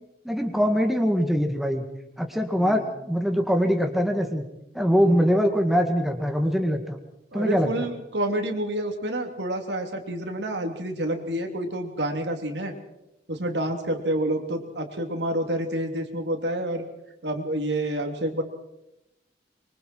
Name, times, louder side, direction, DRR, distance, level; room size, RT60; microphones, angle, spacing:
voice 1, 0.3-1.8 2.2-4.4 4.7-7.0 7.3-7.7, equal, ahead, 4 dB, 1.8 m, -23 dB
voice 2, 7.3-12.7 13.3-16.8 17.2-18.4, right 1 dB, 75° right, 4 dB, 3.2 m, -28 dB
24.5 x 24.0 x 4.6 m, 0.88 s
head